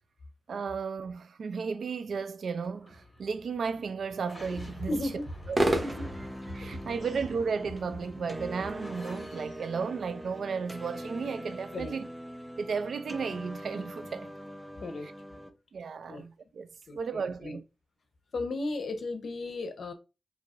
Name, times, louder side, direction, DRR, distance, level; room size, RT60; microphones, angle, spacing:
voice 1, 0.5-5.0 5.5-5.9 6.5-12.1 12.6-14.3 15.0-15.1 15.7-16.7 16.9-17.6, right 5 dB, 85° right, 0.4 m, -34 dB
sound 1, 2.6-10.4, left 1 dB, 30° left, 1.9 m, -53 dB
sound 2, 4.4-9.3, right 1 dB, 30° right, 1.0 m, -34 dB
voice 2, 4.9-5.3 5.8-6.1 11.7-11.9 14.8-15.1 15.3-15.4 16.1-16.3 16.9-17.6 18.3-19.9, left 2 dB, 80° left, 0.8 m, -35 dB
sound 3, 5.9-15.5, equal, 10° right, 0.6 m, -43 dB
4.6 x 2.8 x 2.5 m
wide cardioid pair, 85°, 0 cm